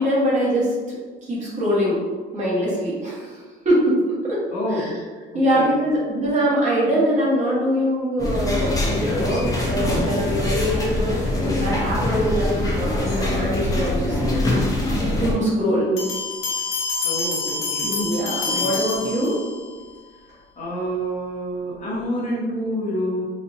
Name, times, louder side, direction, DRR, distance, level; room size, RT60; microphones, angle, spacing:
voice 1, 0.0-2.0 2.3-4.0 4.2-4.4 4.7-5.0 5.3-14.2 15.1-15.9 17.8-19.4, equal, 40° right, -7 dB, 1.3 m, -23 dB
voice 2, 4.5-5.0 5.3-5.7 15.7-16.1 17.0-18.0 18.4-18.7 19.0-19.1 20.6-23.2, equal, 45° left, -5 dB, 1.1 m, -28 dB
sound 1, 8.2-15.3, left 1 dB, 20° left, 0.8 m, -23 dB
sound 2, 16.0-19.7, left 4 dB, 90° left, 1.0 m, -27 dB
4.1 x 2.4 x 2.6 m, 1.4 s
cardioid pair, 135°, 19 cm